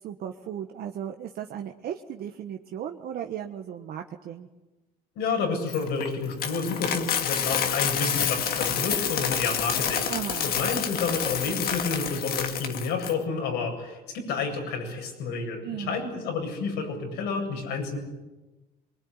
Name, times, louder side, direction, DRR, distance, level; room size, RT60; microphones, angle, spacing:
voice 1, 0.0-4.5 10.1-10.5 15.6-16.1, right 9 dB, 65° right, 4 dB, 1.4 m, -36 dB
voice 2, 5.2-10.1 10.4-18.0, left 4 dB, 85° left, 2 dB, 8.0 m, -30 dB
Coin (dropping), 5.7-13.1, left 8 dB, 65° left, 2.5 m, -28 dB
23.5 x 21.5 x 9.8 m, 1.1 s
cardioid pair, 110°, 17 cm